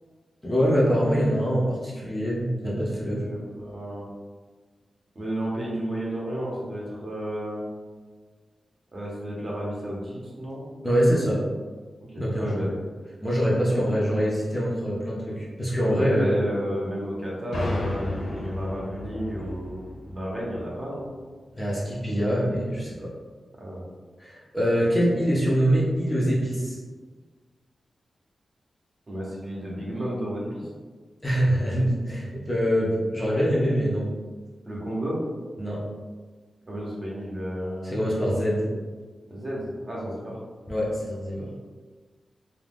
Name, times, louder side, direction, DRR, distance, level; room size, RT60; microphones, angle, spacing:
voice 1, 0.4-3.2 10.8-11.4 12.2-12.7 13.2-16.4 21.6-23.1 24.2-26.8 31.2-34.1 35.6-35.8 37.8-38.7 40.7-41.5, equal, 15° left, -6 dB, 0.5 m, -24 dB
voice 2, 3.3-4.0 5.1-7.6 8.9-10.6 12.0-12.7 13.7-14.2 15.9-19.8 20.1-21.1 23.6-23.9 29.1-30.7 34.6-35.2 36.7-38.0 39.3-40.4, equal, 35° right, -5 dB, 0.7 m, -32 dB
sound 1, 17.5-21.2, left 2 dB, 85° left, 0.3 m, -33 dB
2.4 x 2.2 x 3.3 m, 1.4 s
wide cardioid pair, 155°, 0 cm